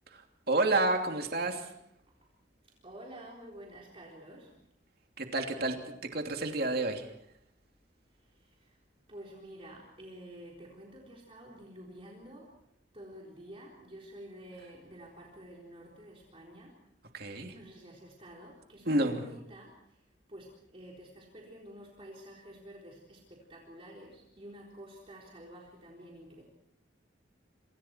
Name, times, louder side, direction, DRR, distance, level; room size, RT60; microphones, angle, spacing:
voice 1, 0.5-1.6 5.2-5.8 6.1-7.1 17.1-17.5 18.9-19.2, right 2 dB, 55° right, 4 dB, 2.9 m, -29 dB
voice 2, 2.8-4.6 6.3-6.4 8.2-8.8 9.1-12.5 12.9-16.7 17.5-20.0 20.3-26.4, right 1 dB, 30° right, -2 dB, 4.0 m, -50 dB
28.0 x 26.0 x 4.5 m, 0.75 s
head